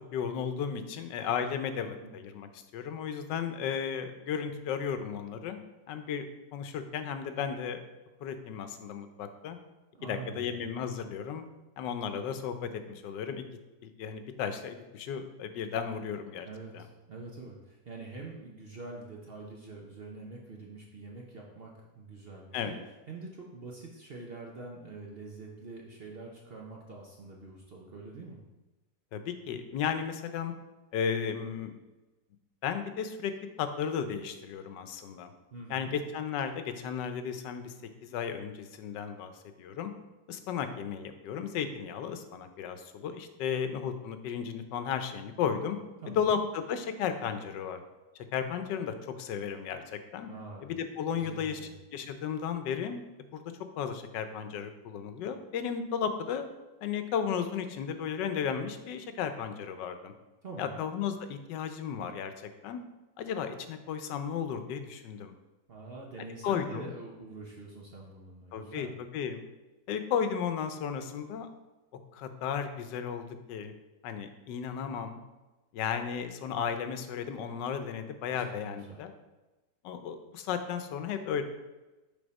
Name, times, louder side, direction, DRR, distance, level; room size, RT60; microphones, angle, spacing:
voice 1, 0.1-5.6 5.9-6.3 6.5-7.8 8.2-9.6 10.0-11.4 11.8-13.4 13.8-16.5 16.7-16.8 22.5-22.8 29.1-30.5 30.9-31.7 32.6-33.3 33.6-35.3 35.7-37.7 38.0-39.3 39.6-39.9 40.3-45.8 46.2-47.8 48.3-50.3 50.6-51.6 51.9-53.1 53.3-53.4 53.8-56.5 56.8-60.1 60.6-62.3 62.6-62.8 63.2-65.3 66.4-66.9 68.5-69.4 69.9-71.5 72.1-73.7 74.0-75.2 75.7-79.1 79.8-81.4, left 7 dB, 85° left, 9 dB, 1.3 m, -34 dB
voice 2, 9.9-10.6 16.4-22.8 23.1-28.4 35.5-35.9 46.0-46.4 50.3-50.7 51.1-51.7 60.4-60.8 65.7-68.9 78.3-79.0, right 3 dB, 50° right, -2 dB, 0.8 m, -45 dB
6.9 x 3.6 x 5.2 m, 1.1 s
omnidirectional pair, 1.8 m